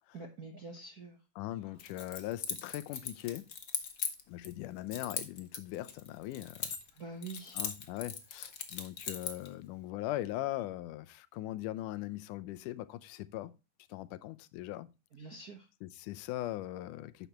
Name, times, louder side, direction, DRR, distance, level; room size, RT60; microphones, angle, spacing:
voice 1, 0.1-1.2 7.0-7.6 15.1-15.7, right 3 dB, 60° right, 0.9 m, -45 dB
voice 2, 1.4-3.5 4.3-6.8 7.5-13.5 13.9-14.9 15.8-17.3, left 15 dB, 90° left, 2.2 m, -40 dB
Keys jangling, 1.8-4.5 4.9-7.0 7.2-9.5, left 6 dB, 70° left, 0.8 m, -39 dB
10.0 x 7.3 x 3.0 m
omnidirectional pair, 3.6 m